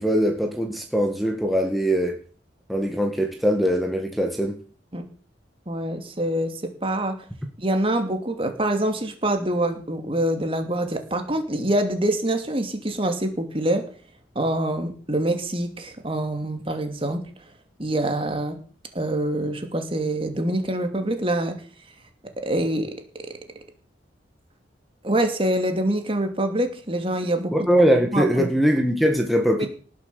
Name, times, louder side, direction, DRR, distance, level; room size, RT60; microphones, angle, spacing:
voice 1, 0.0-2.2 2.7-4.6 27.5-29.7, equal, ahead, 2 dB, 1.9 m, -21 dB
voice 2, 5.7-6.5 6.8-7.2 7.6-13.8 14.3-17.3 17.8-18.6 18.9-21.6 22.4-22.9 25.0-27.7 28.1-28.5 29.6-29.7, right 1 dB, 30° right, 6 dB, 2.7 m, -25 dB
18.5 x 7.6 x 7.0 m, 0.41 s
head